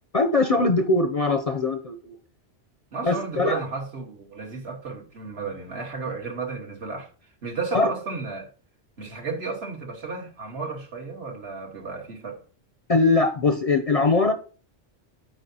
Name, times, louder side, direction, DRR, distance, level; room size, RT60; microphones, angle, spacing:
voice 1, 0.1-2.2 3.0-3.6 7.7-7.9 12.9-14.3, left 3 dB, 45° left, 0.5 m, -21 dB
voice 2, 2.9-7.1 7.4-8.5 9.0-12.4, right 4 dB, 70° right, 1.7 m, -33 dB
13.0 x 4.7 x 2.7 m
omnidirectional pair, 1.1 m